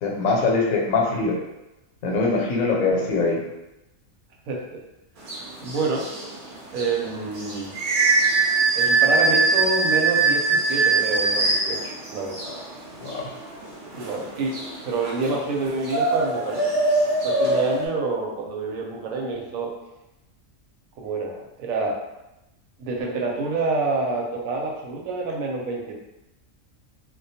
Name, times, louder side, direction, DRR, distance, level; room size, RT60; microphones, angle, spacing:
voice 1, 0.0-1.4 2.0-3.4 13.0-13.3, left 3 dB, 85° left, -2 dB, 1.0 m, -22 dB
voice 2, 4.5-4.8 5.6-6.1 6.7-7.7 8.8-12.4 13.9-14.5 14.8-16.6 17.2-19.7 21.0-21.9 22.8-25.9, right 3 dB, 85° right, -1 dB, 1.0 m, -27 dB
sound 1, 5.2-17.9, right 3 dB, 55° right, 0.6 m, -23 dB
2.3 x 2.2 x 2.7 m, 0.97 s
omnidirectional pair, 1.4 m